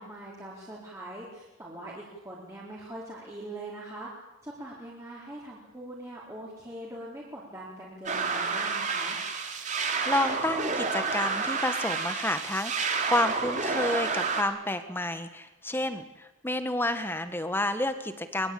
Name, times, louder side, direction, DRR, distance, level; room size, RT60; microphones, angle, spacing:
voice 1, 0.0-4.1 4.4-9.2, right 1 dB, 15° right, -5 dB, 4.1 m, -42 dB
sound 1, 8.1-14.4, right 4 dB, 35° right, 2.9 m, -30 dB
voice 2, 10.1-18.5, left 1 dB, 10° left, 9 dB, 1.6 m, -30 dB
23.5 x 22.0 x 8.7 m, 1.0 s
head